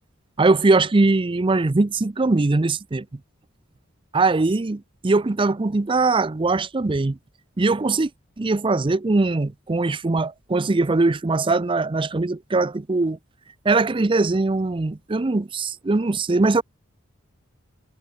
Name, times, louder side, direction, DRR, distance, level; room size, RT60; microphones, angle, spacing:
voice 1, 0.4-3.1 4.1-7.2 7.6-8.1 8.4-13.2 13.6-16.6, right 3 dB, 25° right, 0.5 m, -21 dB
head